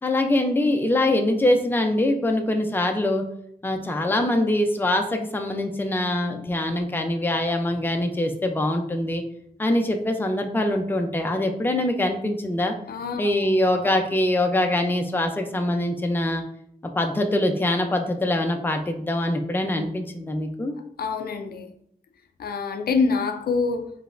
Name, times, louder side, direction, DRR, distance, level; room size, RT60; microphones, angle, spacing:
voice 1, 0.0-3.2 3.6-9.2 9.6-12.7 13.2-16.4 16.9-20.8, left 1 dB, 15° left, 0.5 m, -23 dB
voice 2, 12.9-13.2 21.0-21.7 22.4-23.9, left 4 dB, 75° left, 0.4 m, -25 dB
4.9 x 3.2 x 2.5 m
wide cardioid pair, 125°, 16 cm